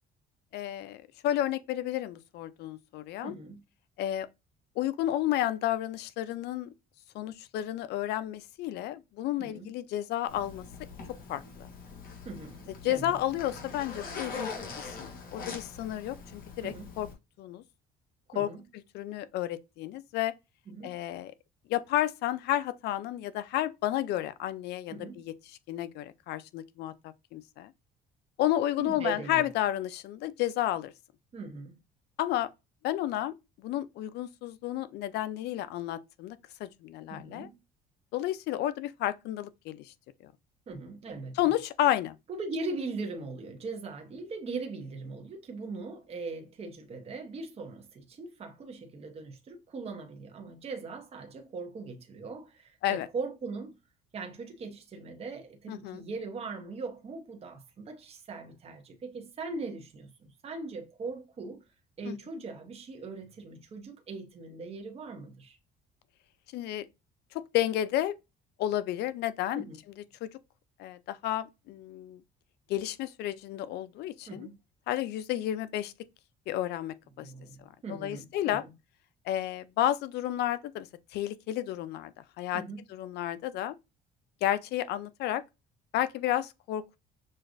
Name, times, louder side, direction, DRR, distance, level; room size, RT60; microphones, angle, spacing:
voice 1, 0.5-3.4 4.0-4.3 4.8-6.7 7.1-10.6 11.3-11.7 12.7-17.1 17.4-17.6 18.3-18.5 18.9-20.3 20.8-21.3 21.7-25.3 25.7-27.7 28.4-30.9 32.2-32.5 32.8-33.3 33.6-37.5 38.1-39.9 40.2-40.3 41.4-42.2 52.8-53.1 55.7-56.0 62.0-62.2 66.5-66.9 67.3-68.2 68.6-70.3 70.8-72.2 72.7-74.5 74.9-75.9 76.5-77.3 77.9-78.6 79.3-80.9 81.1-82.1 82.4-82.6 82.9-83.8 84.4-85.4 85.9-87.0, left 13 dB, 75° left, 0.5 m, -31 dB
voice 2, 3.2-3.6 9.4-9.7 12.2-13.2 16.6-16.9 18.3-18.6 20.7-21.0 24.9-25.2 28.8-29.5 31.3-31.8 37.1-37.6 40.7-41.4 42.3-53.7 54.1-60.1 60.4-61.6 62.0-65.6 69.5-69.8 74.3-74.6 77.2-78.7 82.5-82.8, right 3 dB, 35° right, 1.0 m, -40 dB
Zipper (clothing), 10.3-17.1, left 4 dB, 60° left, 1.4 m, -43 dB
6.3 x 2.4 x 2.5 m
cardioid pair, 110°, 17 cm